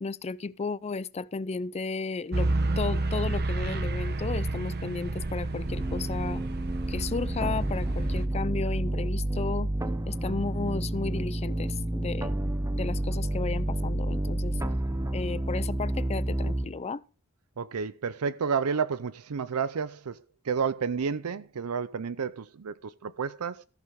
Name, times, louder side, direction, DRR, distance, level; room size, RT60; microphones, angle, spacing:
voice 1, 0.0-2.5 2.8-6.4 6.9-9.7 10.1-12.4 12.8-14.6 15.1-17.0, left 4 dB, 30° left, 0.4 m, -34 dB
sound 1, 2.3-8.3, right 2 dB, 50° right, 1.0 m, -30 dB
sound 2, 5.7-16.7, right 1 dB, 15° right, 0.9 m, -30 dB
voice 2, 17.6-23.7, right 6 dB, 80° right, 0.5 m, -31 dB
14.0 x 6.7 x 5.1 m
head